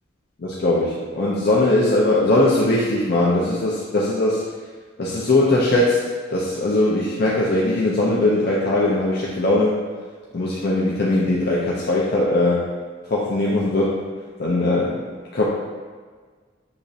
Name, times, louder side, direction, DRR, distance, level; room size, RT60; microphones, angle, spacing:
voice 1, 0.4-4.4 5.0-6.0 6.3-9.8 10.3-12.6 13.1-13.9 14.4-15.0 15.3-15.4, left 2 dB, 55° left, -5 dB, 0.6 m, -20 dB
6.4 x 3.0 x 2.7 m, 1.5 s
head